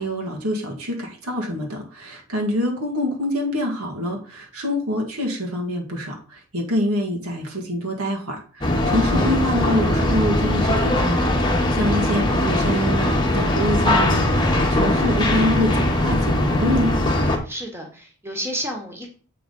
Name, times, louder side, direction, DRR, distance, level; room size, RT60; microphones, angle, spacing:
voice 1, 0.0-16.9, left 1 dB, 85° right, 0 dB, 1.9 m, -25 dB
sound 1, 8.6-17.4, left 1 dB, 20° left, 1.1 m, -20 dB
voice 2, 17.4-19.1, equal, 10° right, 2 dB, 1.3 m, -31 dB
7.6 x 3.9 x 5.4 m, 0.41 s
head